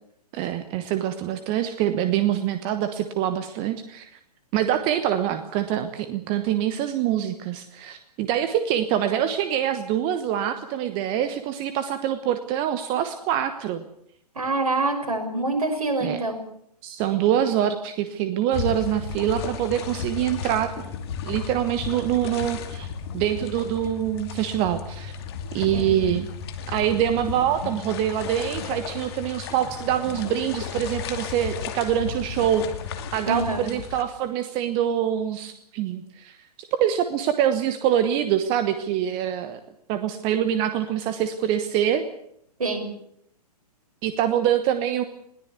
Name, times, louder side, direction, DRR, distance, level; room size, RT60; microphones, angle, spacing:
voice 1, 0.3-4.2 4.5-13.8 16.0-16.2 16.8-20.9 21.2-22.9 23.1-25.1 25.5-26.3 26.7-32.6 33.1-39.6 39.9-42.0 44.0-45.0, right 10 dB, 25° right, 10 dB, 1.2 m, -25 dB
voice 2, 14.3-16.4 25.4-26.1 33.3-33.7 42.6-42.9, right 2 dB, 60° right, 5 dB, 6.3 m, -26 dB
sound 1, 18.5-34.0, left 6 dB, 40° left, 2.6 m, -34 dB
21.5 x 17.5 x 8.2 m, 0.73 s
figure-of-eight pair, 120°, 20 cm